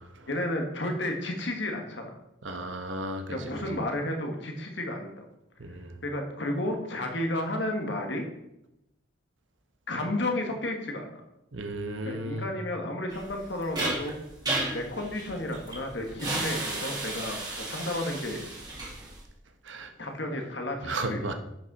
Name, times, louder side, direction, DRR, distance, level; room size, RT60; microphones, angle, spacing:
voice 1, 0.3-2.1 3.3-5.2 6.0-8.2 9.9-11.2 12.0-14.1 14.7-18.4 20.0-21.3, left 1 dB, 65° left, 3 dB, 1.6 m, -32 dB
voice 2, 2.4-3.6 5.6-5.9 11.5-12.5 19.7-19.9 20.8-21.3, right 2 dB, 75° right, 6 dB, 1.1 m, -34 dB
sound 1, 13.1-19.2, right 2 dB, 20° right, 2.2 m, -34 dB
10.5 x 6.3 x 4.2 m, 0.87 s
head